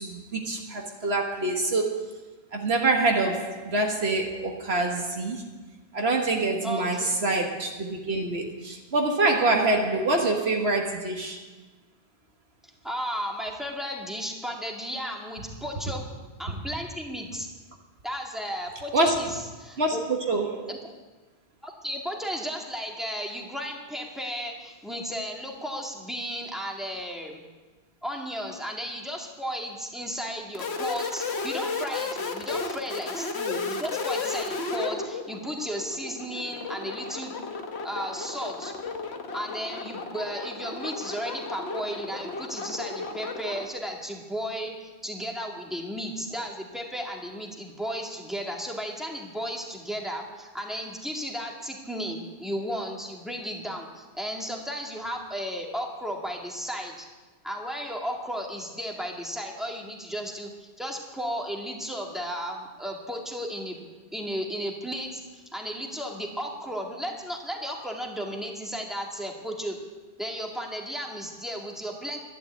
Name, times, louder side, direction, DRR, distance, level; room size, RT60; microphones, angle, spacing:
voice 1, 0.0-2.1 2.5-5.4 5.9-11.5 18.9-19.3 19.8-20.0 20.3-20.8, right 2 dB, 75° right, 1 dB, 1.7 m, -25 dB
voice 2, 6.6-7.0 12.8-16.1 16.4-17.5 18.0-20.0 20.7-20.9 21.6-27.4 28.0-37.3 37.8-38.7 39.3-57.1 57.4-63.8 64.1-69.8 70.2-72.2, equal, ahead, 0 dB, 2.1 m, -34 dB
sound 1, 30.5-43.7, left 4 dB, 75° left, 1.4 m, -33 dB
12.0 x 11.0 x 8.3 m, 1.2 s
omnidirectional pair, 1.1 m